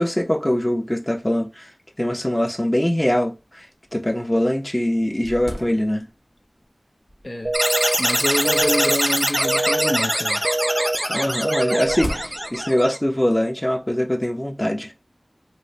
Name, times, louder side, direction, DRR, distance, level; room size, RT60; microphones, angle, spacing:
voice 1, 0.0-1.7 2.0-3.7 3.9-6.1 11.1-14.9, left 1 dB, 20° left, 0.8 m, -22 dB
sound 1, 2.7-2.8 3.4-3.5 4.1-4.2 4.6-6.4 7.1-7.5 8.5-9.8 11.1-12.9, equal, 75° left, 1.0 m, -37 dB
voice 2, 7.2-7.6 8.0-10.4, left 1 dB, 55° left, 0.6 m, -27 dB
sound 2, 7.4-7.9 8.4-8.9 9.4-9.9 10.4-10.9 11.4-11.9, right 2 dB, 80° right, 0.5 m, -24 dB
sound 3, 7.5-13.0, equal, 15° right, 0.8 m, -23 dB
3.0 x 2.2 x 4.0 m
wide cardioid pair, 45°, 0 cm